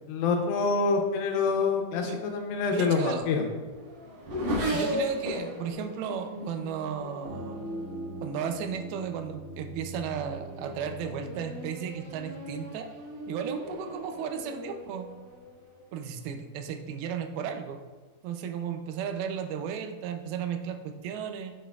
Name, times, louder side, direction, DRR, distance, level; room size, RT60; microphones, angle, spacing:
voice 1, 0.1-3.4, left 4 dB, 85° left, 3 dB, 2.6 m, -26 dB
voice 2, 2.7-3.3 4.7-7.7 8.2-12.9 13.3-15.1 15.9-17.8 18.2-21.5, right 7 dB, 90° right, 7 dB, 2.5 m, -34 dB
Race car auto racing / Accelerating revving vroom, 3.3-8.5 9.3-9.7 10.1-16.0, equal, 70° right, 3.1 m, -37 dB
sound 1, 7.2-12.6, right 1 dB, 60° left, 1.9 m, -42 dB
7.2 x 7.1 x 2.3 m, 1.3 s
omnidirectional pair, 4.2 m